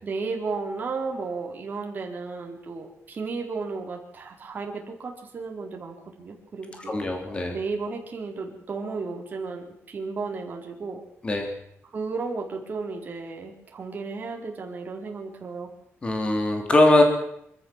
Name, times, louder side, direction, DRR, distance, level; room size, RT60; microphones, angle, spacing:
voice 1, 0.0-6.9 7.5-11.0 11.9-15.7, right 4 dB, 35° right, 1 dB, 4.3 m, -33 dB
voice 2, 6.9-7.5 11.2-11.5 16.0-17.0, left 2 dB, 20° left, 4 dB, 3.1 m, -21 dB
26.0 x 13.5 x 7.5 m, 0.76 s
wide cardioid pair, 180°, 5 cm